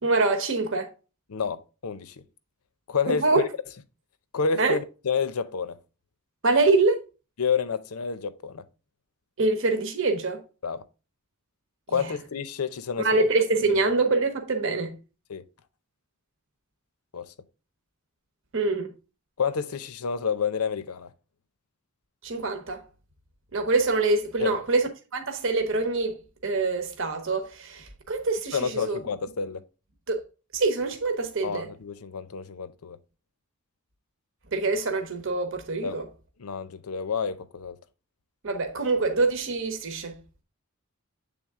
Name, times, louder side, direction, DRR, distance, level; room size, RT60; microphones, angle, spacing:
voice 1, 0.0-0.9 3.1-3.4 4.6-4.8 6.4-7.0 9.4-10.4 11.9-12.1 13.0-15.0 18.5-18.9 22.2-22.8 23.5-26.2 26.4-29.0 30.1-30.2 30.5-31.7 34.5-36.0 38.4-40.2, right 3 dB, 60° right, 1.0 m, -25 dB
voice 2, 1.3-2.1 2.9-3.5 4.3-5.8 7.4-8.6 10.6-10.8 11.9-13.2 15.3-15.4 17.1-17.3 19.4-21.1 24.4-24.6 28.5-29.6 31.4-33.0 35.8-36.0 36.4-37.8, left 5 dB, 85° left, 0.6 m, -29 dB
8.0 x 3.6 x 3.6 m
head